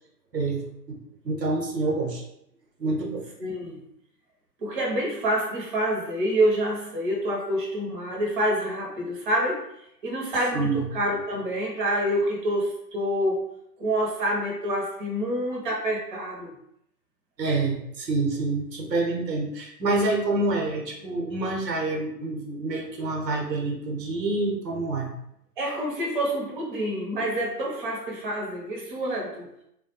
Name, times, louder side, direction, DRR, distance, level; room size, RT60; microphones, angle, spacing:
voice 1, 0.3-1.0 1.2-2.2 2.8-3.2 10.5-10.9 17.4-25.1, right 2 dB, 80° right, 1 dB, 0.8 m, -27 dB
voice 2, 3.4-3.8 4.6-9.6 10.0-13.4 13.8-16.5 25.6-29.5, right 1 dB, 30° right, -3 dB, 0.6 m, -27 dB
2.2 x 2.1 x 2.8 m, 0.75 s
figure-of-eight pair, 130°, 49 cm